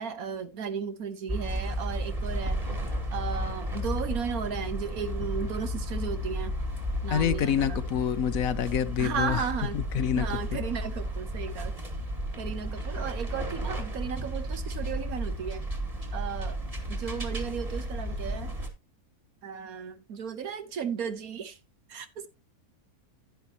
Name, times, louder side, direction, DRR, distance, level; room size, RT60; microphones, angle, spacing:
voice 1, 0.0-2.6 3.1-6.5 7.0-7.8 9.0-11.7 12.4-15.6 16.1-16.6 16.9-18.6 19.4-21.6 21.9-22.3, right 7 dB, 65° right, 1.5 m, -35 dB
sound 1, 1.3-18.7, equal, 25° right, 2.0 m, -33 dB
voice 2, 7.1-9.5 9.7-10.6, left 9 dB, 65° left, 1.0 m, -27 dB
10.5 x 10.0 x 2.9 m
omnidirectional pair, 1.6 m